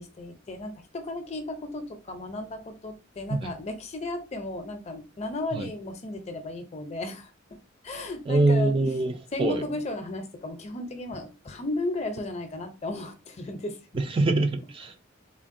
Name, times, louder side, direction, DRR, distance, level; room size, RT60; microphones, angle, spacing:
voice 1, 0.0-7.3 7.8-8.9 9.3-13.8, left 2 dB, 35° left, 0.5 m, -34 dB
voice 2, 8.3-9.6 13.9-15.0, right 2 dB, 25° right, 0.3 m, -24 dB
3.4 x 2.1 x 2.5 m
head